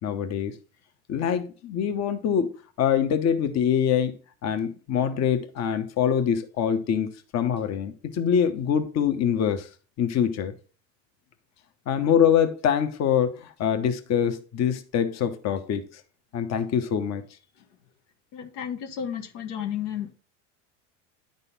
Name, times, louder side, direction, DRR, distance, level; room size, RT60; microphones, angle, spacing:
voice 1, 0.0-0.5 1.1-9.7 10.0-10.5 11.9-15.9 16.3-17.2, left 8 dB, 45° left, 1.2 m, -24 dB
voice 2, 18.3-20.1, left 9 dB, 80° left, 1.5 m, -32 dB
10.0 x 4.1 x 5.4 m
supercardioid pair, 110°, 36 cm